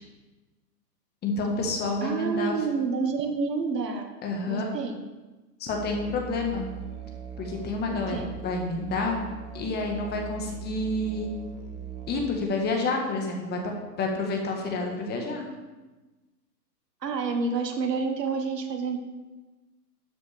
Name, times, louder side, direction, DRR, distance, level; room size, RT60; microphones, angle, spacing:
voice 1, 1.2-2.5 4.2-4.7 5.6-6.7 7.4-9.2 9.5-11.3 12.1-13.6 14.0-15.4, left 3 dB, 20° left, 1 dB, 1.6 m, -29 dB
voice 2, 2.0-4.1 4.5-5.0 8.1-8.3 17.0-19.0, right 4 dB, 75° right, 5 dB, 1.6 m, -28 dB
Musical instrument, 5.7-12.4, right 7 dB, 15° right, 0.5 m, -40 dB
13.0 x 8.1 x 3.5 m, 1.2 s
hypercardioid pair, 125°, 49 cm